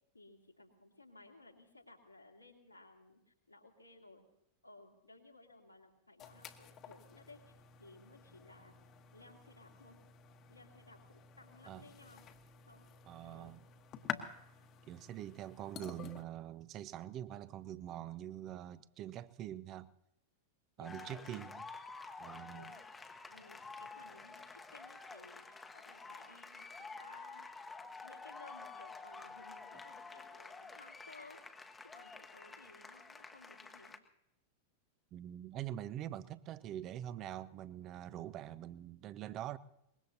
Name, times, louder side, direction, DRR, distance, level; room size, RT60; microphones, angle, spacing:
voice 1, 0.1-4.2 4.6-7.5 7.8-8.7 9.1-10.0 10.5-12.2 12.7-12.9 13.2-13.5 20.8-21.5 22.5-31.4 31.8-34.0, left 2 dB, 85° left, 2.3 m, -59 dB
sound 1, 6.2-16.2, left 9 dB, 35° left, 1.3 m, -50 dB
voice 2, 13.1-13.6 14.9-19.9 20.8-21.7 22.2-22.7 35.1-39.6, right 12 dB, 35° right, 0.7 m, -44 dB
sound 2, 20.8-34.0, left 4 dB, 10° left, 1.1 m, -50 dB
24.0 x 21.0 x 2.8 m
figure-of-eight pair, 90°, 0 cm